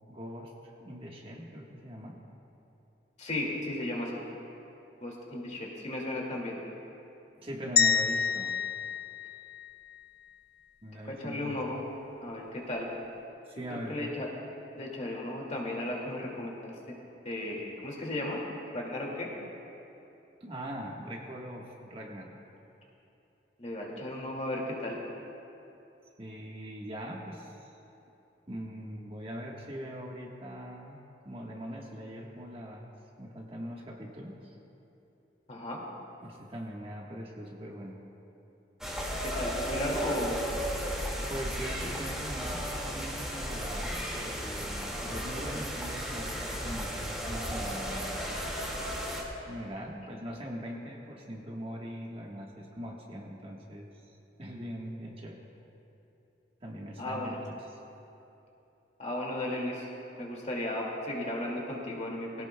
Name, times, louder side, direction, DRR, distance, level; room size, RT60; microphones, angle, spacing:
voice 1, 0.1-2.2 7.4-8.6 10.8-11.6 13.5-14.1 20.4-22.4 26.2-27.8 28.5-32.9 33.2-34.5 36.2-38.0 41.2-48.3 49.5-55.4 56.6-57.8, equal, 30° right, -2 dB, 1.3 m, -41 dB
voice 2, 3.2-4.2 5.0-6.6 11.1-11.8 12.2-12.9 13.9-14.3 14.7-16.7 17.2-18.4 18.7-19.3 23.6-25.0 35.5-35.8 39.2-40.4 57.0-57.4 59.0-59.9 60.2-62.5, left 1 dB, 35° left, -2 dB, 2.2 m, -35 dB
sound 1, 7.8-10.0, left 6 dB, 55° left, 0.7 m, -28 dB
sound 2, 38.8-49.2, equal, 5° right, 2.0 m, -34 dB
22.5 x 17.0 x 2.2 m, 3.0 s
head